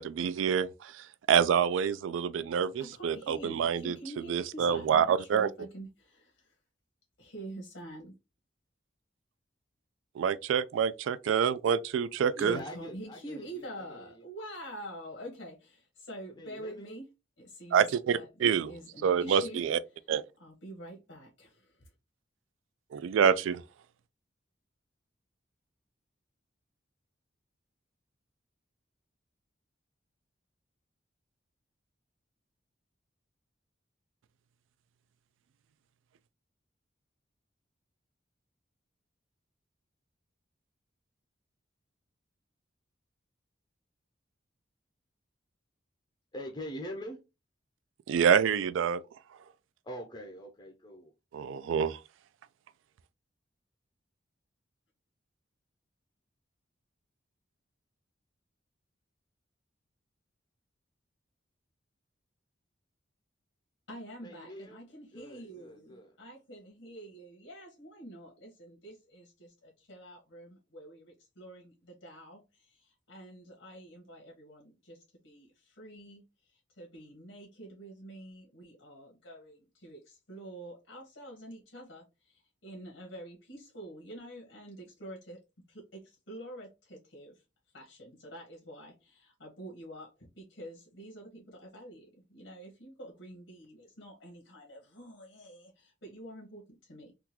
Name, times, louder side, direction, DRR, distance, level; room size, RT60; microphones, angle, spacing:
voice 1, 0.0-4.0 4.3-5.5 10.2-12.6 17.7-18.7 19.0-19.8 20.1-20.2 22.9-23.6 48.1-49.0 51.3-52.0, right 7 dB, 85° right, 0.3 m, -27 dB
voice 2, 2.8-6.5 7.2-8.1 12.4-17.1 17.4-17.9 18.1-19.7 20.4-21.9 63.9-85.4 85.7-87.4 87.7-97.1, right 1 dB, 85° left, 1.2 m, -47 dB
voice 3, 12.3-14.2 16.4-16.9 46.3-47.2 49.8-51.1 64.2-64.8 65.1-66.1, equal, 20° left, 0.5 m, -43 dB
3.7 x 2.3 x 2.8 m
head